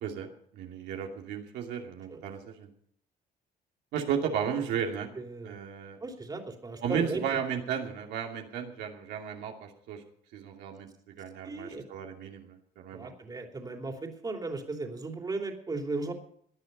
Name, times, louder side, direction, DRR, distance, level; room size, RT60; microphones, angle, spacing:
voice 1, 0.0-2.7 3.9-5.1 5.4-6.0 6.8-10.0 10.3-10.9 11.2-13.1, right 8 dB, 85° right, 1 dB, 2.6 m, -34 dB
voice 2, 5.1-5.6 6.0-7.2 11.4-11.9 12.9-16.1, right 3 dB, 25° right, 3 dB, 3.0 m, -36 dB
18.5 x 10.5 x 5.4 m, 0.64 s
cardioid pair, 110°, 17 cm